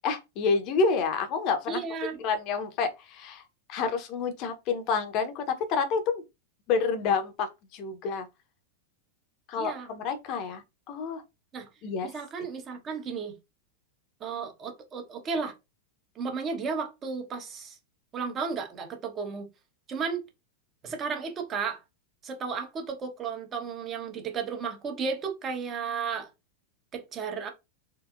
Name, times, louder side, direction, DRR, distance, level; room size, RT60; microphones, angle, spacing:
voice 1, 0.0-1.8 2.2-3.4 3.7-6.2 6.7-8.3 9.5-11.2 11.8-12.1, left 5 dB, 40° left, 0.9 m, -28 dB
voice 2, 1.7-2.2 9.6-10.0 11.5-11.7 12.0-13.4 14.2-15.5 16.1-17.8 18.1-19.5 19.9-20.2 20.8-21.8 22.2-26.3 26.9-27.5, right 5 dB, 25° right, 1.1 m, -33 dB
3.9 x 2.6 x 2.5 m
figure-of-eight pair, 90°, 0 cm